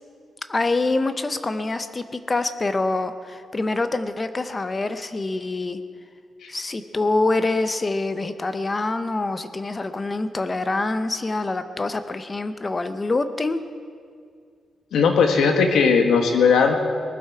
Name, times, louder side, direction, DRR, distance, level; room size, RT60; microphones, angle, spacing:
voice 1, 0.5-5.8 6.5-13.6, left 2 dB, 20° left, 10 dB, 0.6 m, -25 dB
voice 2, 14.9-16.7, left 5 dB, 75° left, 4 dB, 1.5 m, -18 dB
19.5 x 12.0 x 4.8 m, 2.1 s
wide cardioid pair, 175°, 0 cm